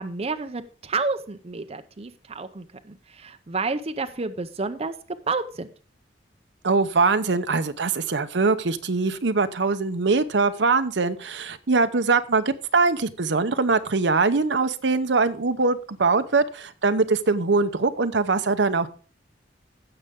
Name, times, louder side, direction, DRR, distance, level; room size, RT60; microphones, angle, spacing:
voice 1, 0.0-5.7, right 4 dB, 35° right, 9 dB, 0.6 m, -30 dB
voice 2, 6.6-18.9, right 4 dB, 75° right, 10 dB, 0.8 m, -22 dB
16.0 x 6.7 x 3.6 m, 0.38 s
head